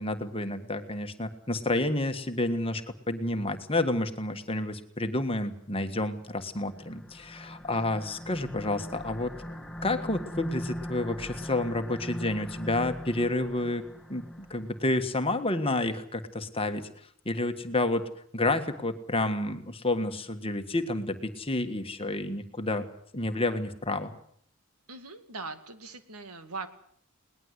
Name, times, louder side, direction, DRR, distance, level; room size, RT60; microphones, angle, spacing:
voice 1, 0.0-2.8 3.1-9.3 9.8-13.8 14.1-16.9 17.2-18.0 18.3-22.9 23.1-24.1, left 2 dB, 25° left, 8 dB, 1.6 m, -30 dB
sound 1, 6.5-15.1, equal, ahead, 1.6 m, -41 dB
voice 2, 24.9-26.7, right 3 dB, 85° right, 10 dB, 2.2 m, -41 dB
21.5 x 19.5 x 8.2 m, 0.65 s
head